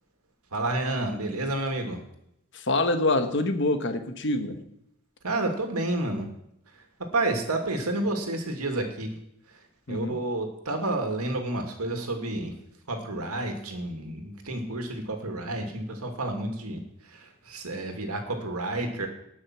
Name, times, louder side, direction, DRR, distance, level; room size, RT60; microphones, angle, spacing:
voice 1, 0.5-2.0 5.2-6.3 7.1-9.1 9.5-9.6 9.9-12.5 12.9-19.1, right 2 dB, 90° right, 4 dB, 2.5 m, -30 dB
voice 2, 2.5-4.6 9.9-10.2, left 2 dB, 55° left, 8 dB, 1.3 m, -26 dB
19.0 x 6.4 x 6.2 m, 0.80 s
head